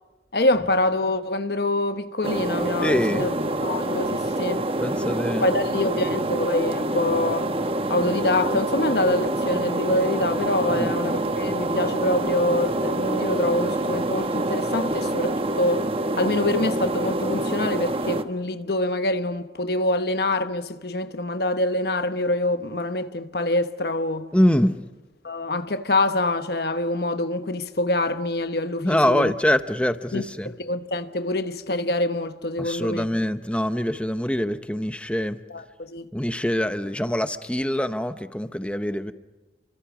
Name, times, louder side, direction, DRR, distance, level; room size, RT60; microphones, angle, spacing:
voice 1, 0.3-3.3 3.6-4.6 5.4-7.4 7.9-15.9 16.2-24.3 25.2-29.3 30.1-33.1 35.5-35.6 35.9-36.1, left 2 dB, 60° left, 1.0 m, -25 dB
sound 1, 2.2-18.2, right 1 dB, 30° right, 1.1 m, -26 dB
voice 2, 2.8-3.3 4.8-5.5 10.7-10.9 24.3-24.8 28.8-30.5 32.6-35.4 36.1-39.1, equal, 5° left, 0.9 m, -24 dB
30.0 x 24.5 x 6.1 m
head